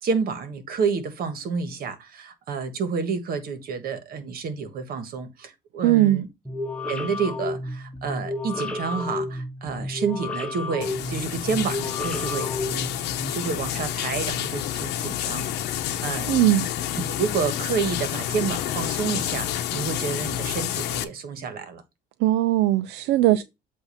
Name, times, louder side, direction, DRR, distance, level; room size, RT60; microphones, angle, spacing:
voice 1, 0.0-6.3 6.9-15.5 16.0-16.3 17.0-21.8, right 5 dB, 60° right, 1.5 m, -29 dB
voice 2, 5.8-6.2 16.3-16.7 22.2-23.4, right 14 dB, 85° right, 0.4 m, -19 dB
sound 1, 6.5-13.3, left 2 dB, 5° left, 1.2 m, -32 dB
sound 2, 10.8-21.0, left 11 dB, 80° left, 0.9 m, -29 dB
8.0 x 2.7 x 5.5 m
cardioid pair, 110°, 17 cm